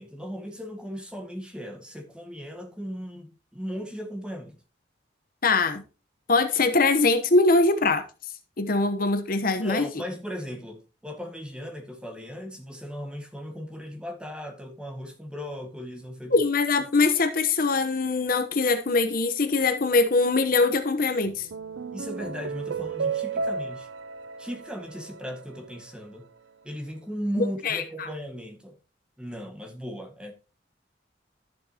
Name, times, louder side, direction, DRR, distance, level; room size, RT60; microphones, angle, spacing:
voice 1, 0.0-4.6 9.6-16.4 21.9-23.9 24.4-26.3 26.6-28.7 29.2-30.3, equal, 5° right, 1.7 m, -37 dB
voice 2, 5.4-5.8 6.3-8.0 8.6-9.9 16.3-21.5 27.4-28.1, left 3 dB, 50° left, 1.0 m, -22 dB
sound 1, 21.3-25.8, right 5 dB, 90° right, 0.5 m, -33 dB
12.5 x 7.3 x 2.9 m
head